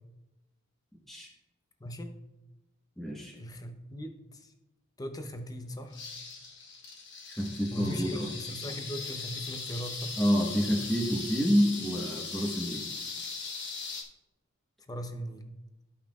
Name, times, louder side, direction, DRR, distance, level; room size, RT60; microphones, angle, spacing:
voice 1, 1.8-2.1 3.3-4.1 5.0-6.0 7.7-10.1 14.9-15.5, equal, 20° left, 6 dB, 0.7 m, -39 dB
voice 2, 3.0-3.3 7.3-8.3 10.2-12.8, equal, ahead, -3 dB, 1.1 m, -28 dB
sound 1, 5.9-14.0, left 4 dB, 55° left, 1.1 m, -39 dB
14.0 x 5.5 x 2.4 m, 1.0 s
head